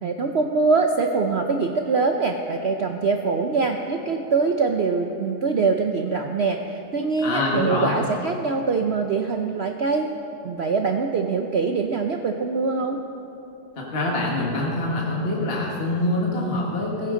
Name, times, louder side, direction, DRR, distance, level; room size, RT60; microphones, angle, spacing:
voice 1, 0.0-10.1 10.4-13.0, right 4 dB, 70° right, 4 dB, 0.6 m, -23 dB
voice 2, 7.2-8.0 13.8-17.1, left 2 dB, 35° left, -3 dB, 1.7 m, -25 dB
15.5 x 15.0 x 3.8 m, 3.0 s
omnidirectional pair, 1.9 m